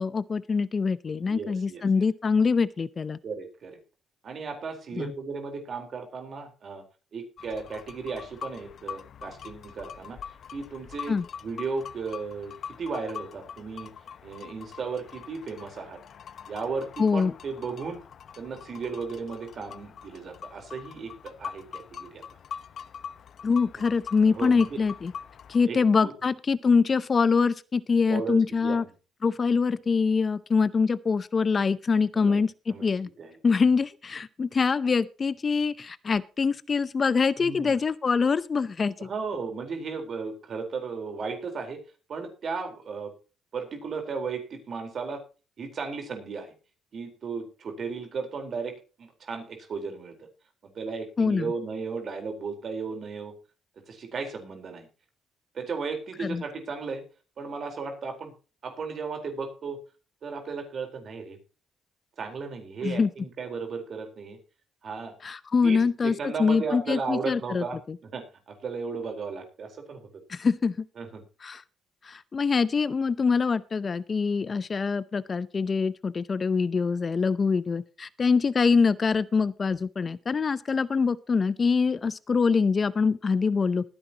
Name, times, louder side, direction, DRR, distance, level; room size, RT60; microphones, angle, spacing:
voice 1, 0.0-3.2 5.0-5.1 11.1-11.2 17.0-17.3 23.4-25.1 25.5-28.8 29.2-33.1 33.4-39.1 51.2-51.5 56.2-56.4 62.8-63.1 65.2-68.0 70.3-70.8 71.4-71.6 72.0-83.8, left 5 dB, 40° left, 17 dB, 0.6 m, -24 dB
voice 2, 1.1-2.0 3.2-3.8 4.2-6.8 7.1-11.2 11.4-13.9 14.2-16.0 16.5-18.0 18.4-22.2 24.3-24.8 25.6-26.1 28.1-28.8 32.1-32.4 32.7-33.4 37.4-37.8 39.0-41.8 42.1-43.1 43.5-45.2 45.6-46.5 46.9-50.3 50.7-53.3 53.9-54.9 55.5-57.0 57.4-58.3 58.6-59.8 60.2-61.4 62.2-64.4 64.8-65.1 65.6-70.1 71.0-71.2, right 4 dB, 55° right, 5 dB, 4.0 m, -35 dB
sound 1, 7.4-25.7, left 7 dB, 60° left, 1.0 m, -43 dB
20.0 x 10.0 x 2.9 m, 0.34 s
cardioid pair, 90°, 0 cm